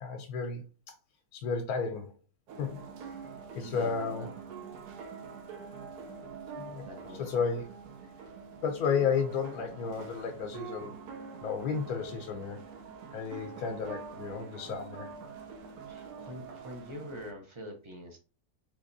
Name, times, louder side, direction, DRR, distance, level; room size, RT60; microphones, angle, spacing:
voice 1, 0.0-0.6 1.3-2.1 2.6-2.8 3.5-4.3 6.6-6.9 7.1-7.7 8.6-11.0 11.4-12.7 13.1-15.1, left 6 dB, 85° left, 4 dB, 1.1 m, -32 dB
sound 1, 2.5-17.3, right 5 dB, 90° right, 1.2 m, -45 dB
voice 2, 3.6-4.3 6.8-7.3 15.9-18.2, equal, 40° right, 2 dB, 0.4 m, -44 dB
3.9 x 2.9 x 2.6 m, 0.34 s
omnidirectional pair, 1.6 m